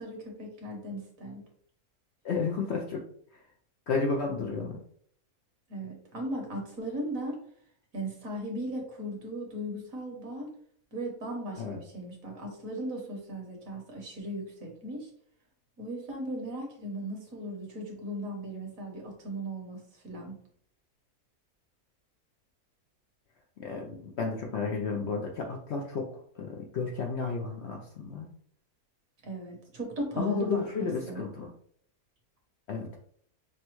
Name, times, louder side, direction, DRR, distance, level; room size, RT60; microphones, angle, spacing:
voice 1, 0.0-1.4 5.7-7.4 7.9-10.5 10.9-15.1 15.8-20.4 29.2-31.2, right 1 dB, 65° right, 1 dB, 1.5 m, -37 dB
voice 2, 2.2-3.0 3.9-4.8 11.6-11.8 23.6-28.3 30.2-31.5 32.7-33.0, left 4 dB, 65° left, 0 dB, 0.7 m, -32 dB
6.0 x 2.2 x 3.0 m, 0.62 s
omnidirectional pair, 1.6 m